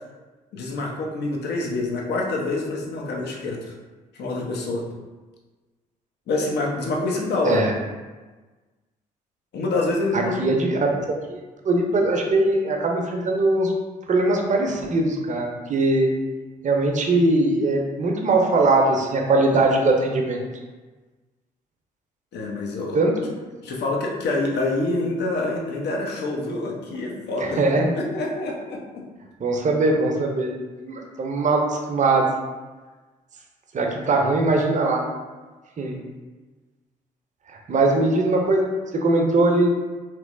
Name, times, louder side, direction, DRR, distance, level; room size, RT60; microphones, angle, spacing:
voice 1, 0.5-3.7 4.1-4.8 6.3-7.6 9.5-10.4 22.3-23.0 23.6-29.0, left 2 dB, 55° left, -1 dB, 0.8 m, -26 dB
voice 2, 10.1-10.9 11.3-11.4 11.6-13.7 14.1-16.1 16.6-20.4 22.9-23.1 27.4-27.9 29.4-30.5 30.8-32.3 33.7-35.1 35.8-36.0 37.5-39.7, right 2 dB, 35° right, 1 dB, 0.7 m, -21 dB
3.2 x 3.0 x 2.5 m, 1.3 s
figure-of-eight pair, 45°, 21 cm